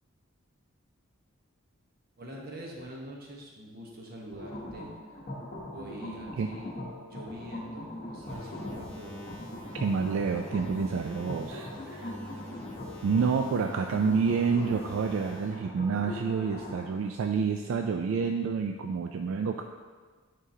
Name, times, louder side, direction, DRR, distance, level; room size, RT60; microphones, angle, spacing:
voice 1, 2.2-5.2 5.7-6.7 7.0-9.3 13.2-13.4, equal, 45° right, -2 dB, 1.0 m, -44 dB
sound 1, 4.3-16.9, left 1 dB, 40° left, 0.8 m, -41 dB
sound 2, 8.2-15.6, left 1 dB, 5° left, 0.9 m, -45 dB
voice 2, 9.8-12.1 13.0-19.6, right 5 dB, 70° right, 4 dB, 0.3 m, -28 dB
9.5 x 3.8 x 2.8 m, 1.5 s
head